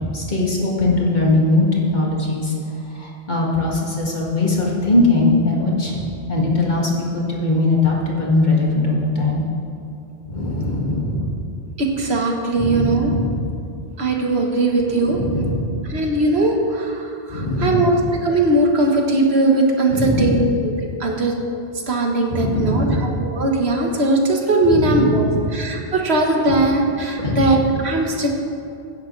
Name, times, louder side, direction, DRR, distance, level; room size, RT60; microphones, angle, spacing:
voice 1, 0.0-2.5 3.0-9.4 10.3-11.3 12.5-13.5 14.9-15.8 17.3-17.8 19.9-20.5 22.3-23.2 24.6-25.5 26.5-26.6 27.2-27.6, left 2 dB, 45° left, -4 dB, 2.2 m, -20 dB
voice 2, 11.8-13.1 14.0-15.2 15.9-20.7 21.0-21.3 21.9-28.3, right 2 dB, 80° right, 1 dB, 1.7 m, -19 dB
16.5 x 10.0 x 3.3 m, 2.5 s
omnidirectional pair, 1.1 m